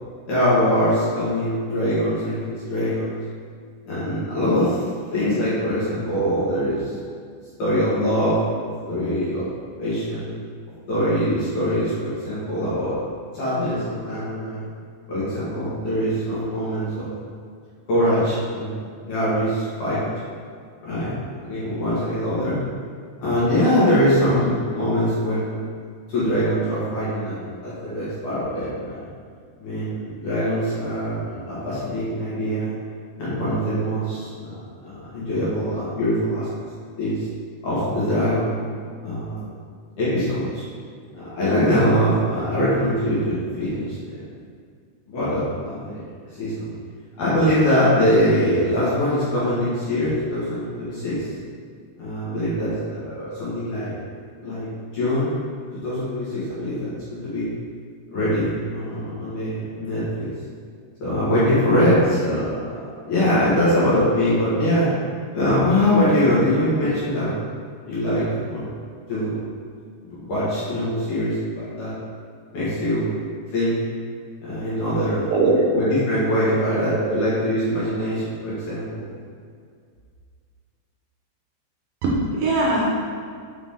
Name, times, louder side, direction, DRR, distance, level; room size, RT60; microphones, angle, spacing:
voice 1, 0.3-3.2 3.9-4.8 5.1-6.8 7.6-9.5 9.8-10.3 10.9-13.0 13.3-14.6 15.1-17.1 17.9-20.1 20.8-22.6 23.2-25.5 26.1-29.0 29.6-32.7 33.2-36.5 37.0-37.2 37.6-38.6 39.0-39.5 40.0-40.6 41.1-44.2 45.1-46.0 46.4-46.7 47.2-51.2 52.0-54.0 54.4-54.7 54.9-55.3 55.8-57.5 58.1-60.3 61.0-62.6 63.1-64.9 65.3-67.3 67.9-68.7 69.1-69.4 70.0-71.9 72.5-73.1 73.5-73.8 74.4-75.3 75.7-79.1, equal, 60° left, -10 dB, 2.4 m, -23 dB
voice 2, 75.0-75.7 76.7-77.2 82.0-82.9, right 2 dB, 80° right, -3 dB, 2.0 m, -22 dB
5.9 x 5.9 x 3.7 m, 2.1 s
omnidirectional pair, 5.0 m